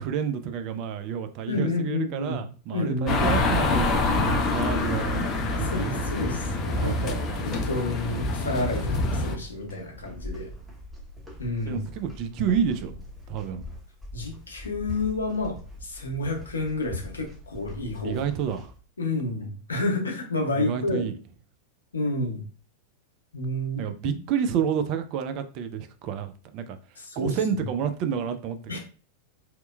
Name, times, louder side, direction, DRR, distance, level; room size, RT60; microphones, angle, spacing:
voice 1, 0.0-3.9 4.3-6.2 6.8-7.7 11.7-13.6 18.0-18.7 20.6-21.2 23.8-26.8 27.2-28.8, right 8 dB, 40° right, 8 dB, 0.3 m, -30 dB
voice 2, 1.5-2.4 2.7-3.2 5.6-10.5 11.4-11.9 14.1-18.2 19.0-21.1 21.9-22.4 23.3-24.2 27.0-27.3 28.7-28.8, left 2 dB, 75° left, 2 dB, 0.6 m, -30 dB
sound 1, 3.1-9.4, left 2 dB, 30° left, 0.4 m, -26 dB
sound 2, 8.7-18.8, left 1 dB, ahead, 0.8 m, -41 dB
2.9 x 2.0 x 2.2 m, 0.38 s
figure-of-eight pair, 90°, 0 cm